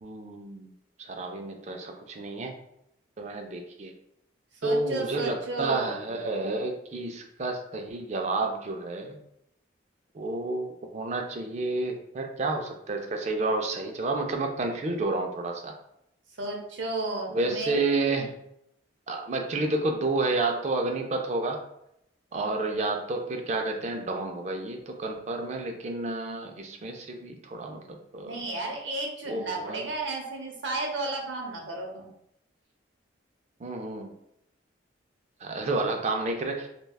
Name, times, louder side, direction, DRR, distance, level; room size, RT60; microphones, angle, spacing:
voice 1, 0.0-0.7 1.0-2.5 3.2-3.9 4.6-9.2 10.1-15.7 17.3-18.3 19.1-21.6 22.3-28.6 29.3-29.9 33.6-34.1 35.4-36.7, right 2 dB, 35° right, 4 dB, 0.4 m, -30 dB
voice 2, 4.6-6.1 16.4-17.8 28.2-32.1, right 2 dB, 80° right, 1 dB, 0.7 m, -33 dB
3.3 x 2.2 x 2.2 m, 0.78 s
head